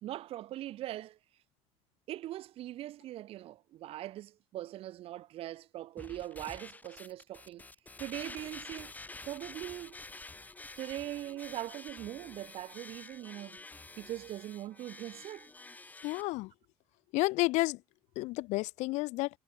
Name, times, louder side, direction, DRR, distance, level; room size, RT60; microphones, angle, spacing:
voice 1, 0.0-1.2 2.1-7.7 8.0-8.9 9.2-10.0 10.8-13.6 14.0-15.5, right 14 dB, 50° right, 0.5 m, -41 dB
sound 1, 6.0-16.2, left 3 dB, 15° left, 2.6 m, -49 dB
voice 2, 16.0-16.5 17.1-17.8 18.2-19.3, left 21 dB, 75° left, 0.5 m, -31 dB
cardioid pair, 125°, 12 cm